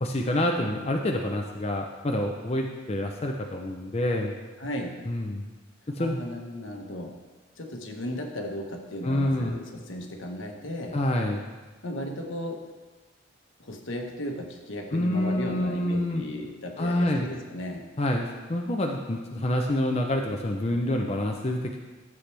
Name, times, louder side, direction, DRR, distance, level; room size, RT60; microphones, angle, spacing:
voice 1, 0.0-4.3 5.1-5.4 5.9-6.2 9.0-9.6 10.9-11.4 14.9-16.2 16.8-17.3 18.0-21.8, left 1 dB, 30° left, 1 dB, 0.7 m, -27 dB
voice 2, 4.6-5.1 5.8-7.2 7.6-11.0 11.8-12.6 13.6-17.9, left 1 dB, 75° left, 2 dB, 1.3 m, -35 dB
12.5 x 7.8 x 3.4 m, 1.3 s
head